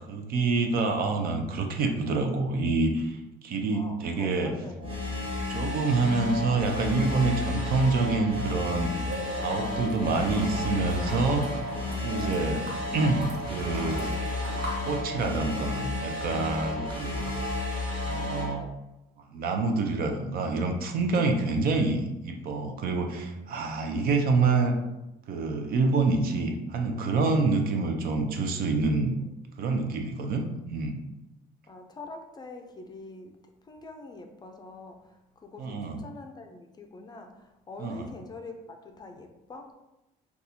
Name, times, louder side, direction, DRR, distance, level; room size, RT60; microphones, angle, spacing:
voice 1, 0.1-4.5 5.5-9.0 9.3-11.5 12.0-12.6 12.9-14.1 14.8-17.3 18.0-18.7 19.3-24.8 25.3-29.1 29.6-31.0 35.6-36.0 37.8-38.1, right 3 dB, 60° right, 4 dB, 0.5 m, -27 dB
voice 2, 3.7-5.1 16.8-17.0 28.0-29.3 31.7-33.3 33.6-39.7, left 3 dB, 25° left, 4 dB, 0.4 m, -45 dB
sound 1, 4.8-18.5, left 2 dB, 30° right, 1.1 m, -32 dB
sound 2, 9.0-15.0, equal, 90° right, 0.9 m, -40 dB
4.0 x 2.3 x 2.7 m, 0.96 s
cardioid pair, 110°, 17 cm